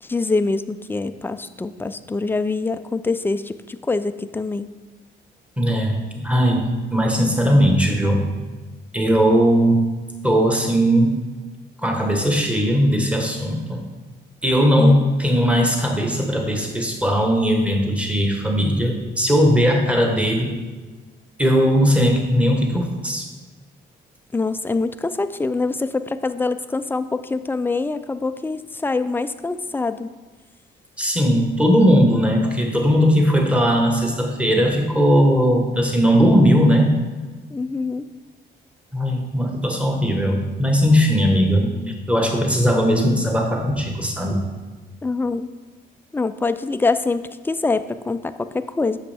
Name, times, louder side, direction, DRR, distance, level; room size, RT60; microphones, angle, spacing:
voice 1, 0.0-4.7 14.8-15.0 24.3-30.1 37.5-38.1 45.0-45.5 46.1-49.0, left 3 dB, 10° left, 11 dB, 0.3 m, -24 dB
voice 2, 5.6-8.3 8.9-9.9 10.2-11.2 11.8-13.8 14.4-20.5 21.4-23.3 31.0-37.0 38.9-41.7 42.1-44.4, equal, 5° right, 2 dB, 1.3 m, -18 dB
8.3 x 6.4 x 3.5 m, 1.3 s
cardioid pair, 90°, 20 cm